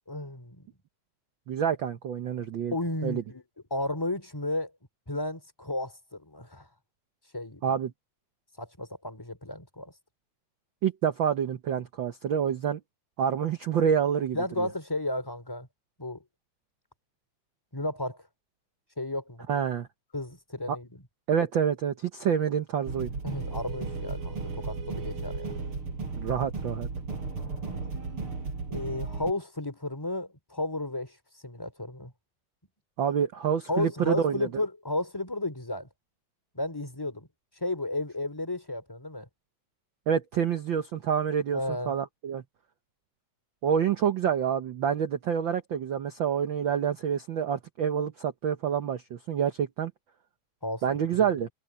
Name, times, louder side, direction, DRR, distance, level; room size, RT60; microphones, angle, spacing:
voice 1, 0.1-0.7 2.7-3.4 3.7-4.7 5.1-6.7 7.3-7.8 8.6-9.9 14.3-15.7 16.0-16.2 17.7-18.2 19.0-19.5 20.1-21.0 23.2-25.6 28.7-31.2 31.4-32.1 33.7-35.9 36.5-37.3 37.6-39.3 41.5-41.9 50.6-51.3, left 1 dB, 5° left, 3.1 m, -33 dB
voice 2, 1.5-2.7 3.0-3.2 7.6-7.9 10.8-12.8 13.2-14.7 19.5-19.9 20.7-20.8 21.3-23.1 26.1-26.9 33.0-34.5 40.1-41.6 41.9-42.4 43.6-49.9 50.8-51.5, right 8 dB, 80° right, 1.1 m, -27 dB
sound 1, 22.9-29.3, right 4 dB, 45° right, 5.1 m, -35 dB
omnidirectional pair, 3.5 m